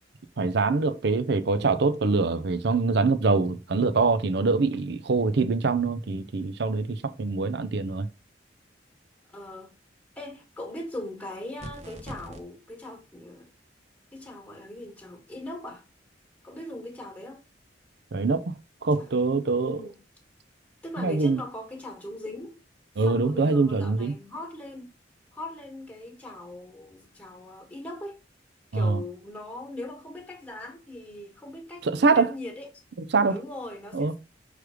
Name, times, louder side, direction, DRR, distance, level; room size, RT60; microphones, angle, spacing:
voice 1, 0.4-8.1 18.1-18.5 18.8-19.8 21.0-21.4 23.0-24.1 28.7-29.0 31.8-32.3 33.1-33.4 33.9-34.1, right 3 dB, 65° right, 0.6 m, -24 dB
voice 2, 9.3-9.7 10.1-13.5 14.1-15.8 16.4-17.4 18.9-19.1 19.6-20.0 20.8-22.6 23.0-24.9 25.3-28.2 28.7-32.7 33.3-34.2, left 1 dB, 10° left, 1.5 m, -40 dB
sound 1, 11.6-12.4, right 1 dB, 40° right, 1.2 m, -40 dB
6.3 x 3.3 x 4.9 m
head